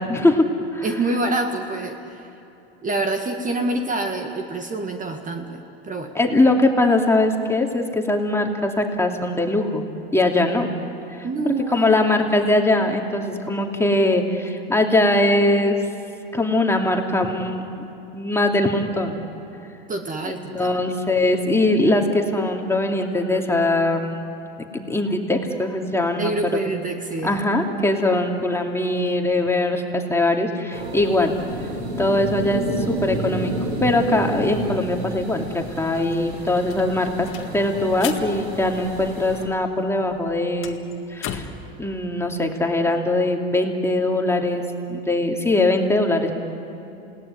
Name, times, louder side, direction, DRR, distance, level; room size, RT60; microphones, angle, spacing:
voice 1, 0.1-0.5 0.7-0.9 6.1-9.8 10.1-10.7 11.1-15.8 16.3-19.2 20.2-24.2 24.7-26.3 27.2-31.3 32.0-33.5 33.8-37.3 37.5-40.8 41.1-41.5 41.8-44.6 44.9-46.4, left 2 dB, 10° left, 2 dB, 2.7 m, -21 dB
voice 2, 0.8-2.3 2.8-6.2 11.2-11.9 19.9-20.8 26.2-27.4, right 2 dB, 25° right, 5 dB, 1.9 m, -26 dB
sound 1, 30.7-39.5, right 1 dB, 85° right, 4.1 m, -30 dB
sound 2, 35.8-39.5 39.8-41.7, left 8 dB, 40° left, 1.9 m, -37 dB
28.5 x 18.0 x 9.8 m, 2.9 s
hypercardioid pair, 90°, 31 cm